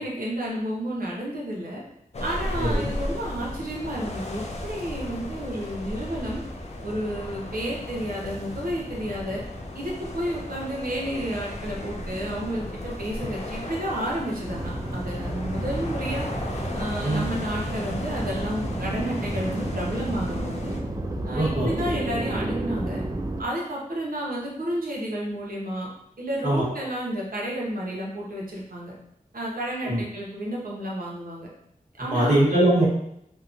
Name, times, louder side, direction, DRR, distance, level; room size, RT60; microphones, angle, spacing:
voice 1, 0.0-1.8 2.2-6.4 6.8-9.4 9.7-16.3 16.7-20.7 21.2-23.0 23.4-25.9 26.2-28.9 29.3-31.5 32.0-32.4, equal, 75° right, -4 dB, 0.8 m, -31 dB
sound 1, 2.1-20.8, left 1 dB, 45° left, 0.5 m, -35 dB
voice 2, 2.6-2.9 17.0-17.3 21.3-21.7 26.4-26.7 29.8-30.0 32.0-32.8, right 1 dB, 50° right, -6 dB, 1.1 m, -22 dB
sound 2, 14.5-23.4, right 1 dB, 25° right, 0.3 m, -31 dB
2.8 x 2.2 x 2.5 m, 0.75 s
wide cardioid pair, 50°, 15 cm